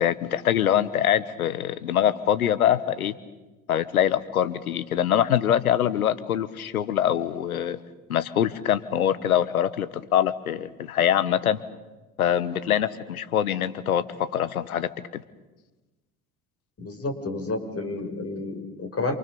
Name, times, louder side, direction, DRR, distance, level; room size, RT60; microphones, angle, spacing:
voice 1, 0.0-3.1 3.7-7.8 8.1-11.6 12.2-14.9, left 10 dB, 90° left, 15 dB, 1.4 m, -24 dB
voice 2, 16.8-19.1, left 2 dB, 35° left, 6 dB, 6.4 m, -30 dB
28.0 x 28.0 x 7.0 m, 1.1 s
hypercardioid pair, 65°, 42 cm